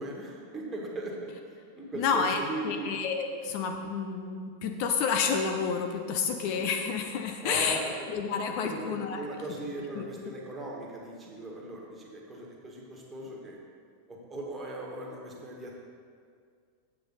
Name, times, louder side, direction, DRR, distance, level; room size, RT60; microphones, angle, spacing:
voice 1, 0.0-1.3 1.8-2.9 7.4-8.1 8.6-13.6 14.1-15.8, right 1 dB, 15° right, -2 dB, 1.7 m, -38 dB
voice 2, 1.9-7.8 8.1-9.2 9.8-10.0, left 6 dB, 45° left, 5 dB, 0.6 m, -30 dB
7.7 x 7.6 x 4.1 m, 2.1 s
figure-of-eight pair, 90°, 0 cm